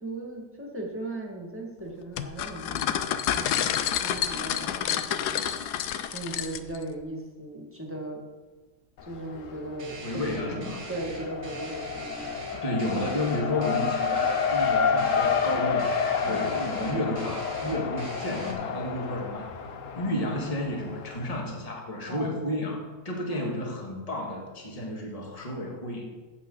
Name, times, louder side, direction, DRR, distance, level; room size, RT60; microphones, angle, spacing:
voice 1, 0.0-5.4 6.1-8.2 9.0-12.2 16.3-16.5 22.1-22.6 23.3-23.4, right 2 dB, 10° right, -1 dB, 1.9 m, -38 dB
sound 1, 2.2-6.8, left 10 dB, 80° left, 1.2 m, -29 dB
Race car auto racing, 9.0-9.7 10.0-21.4, left 6 dB, 60° left, 1.1 m, -29 dB
sound 2, 9.8-18.5, right 2 dB, 90° right, 2.6 m, -42 dB
voice 2, 10.0-10.8 12.6-19.5 20.0-26.1, left 1 dB, 20° left, -1 dB, 1.8 m, -32 dB
14.0 x 8.3 x 4.0 m, 1.3 s
omnidirectional pair, 1.8 m